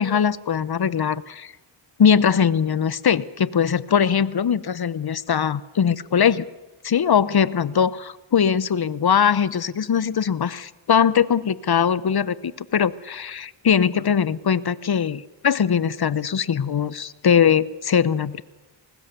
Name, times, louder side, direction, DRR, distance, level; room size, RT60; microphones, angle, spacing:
voice 1, 0.0-1.5 2.0-6.5 6.8-18.4, left 7 dB, 50° left, 19 dB, 0.8 m, -21 dB
21.0 x 19.0 x 6.8 m, 1.1 s
wide cardioid pair, 70°, 49 cm